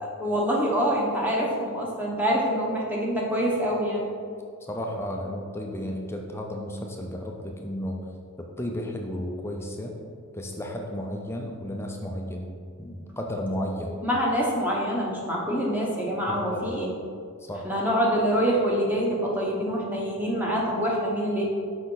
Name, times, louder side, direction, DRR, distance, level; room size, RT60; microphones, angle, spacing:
voice 1, 0.2-4.0 13.8-16.9 17.6-21.4, equal, 10° right, -3 dB, 1.1 m, -25 dB
voice 2, 4.7-8.0 8.4-10.0 10.3-12.5 12.8-14.0 16.3-16.7 17.5-17.7, left 1 dB, 10° left, 1 dB, 0.5 m, -33 dB
6.4 x 5.4 x 3.9 m, 2.2 s
head